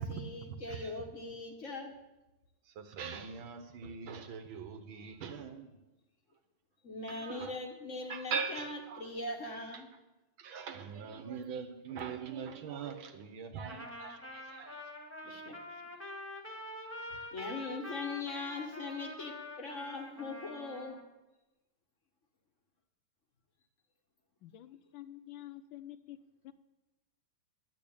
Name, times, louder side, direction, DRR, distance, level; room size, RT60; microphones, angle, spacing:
voice 1, 0.0-2.0 6.8-9.9 15.2-15.8 17.3-21.0, left 3 dB, 40° left, 3 dB, 1.5 m, -41 dB
voice 2, 0.7-1.0 2.7-5.7 7.1-7.6 8.1-9.1 9.7-9.8 10.4-14.8, right 6 dB, 75° right, 8 dB, 1.9 m, -41 dB
Trumpet, 13.7-21.0, left 1 dB, 5° left, 1.6 m, -46 dB
voice 3, 24.4-26.2 26.4-26.5, left 13 dB, 75° left, 12 dB, 1.3 m, -48 dB
11.5 x 8.6 x 8.8 m, 1.0 s
omnidirectional pair, 2.3 m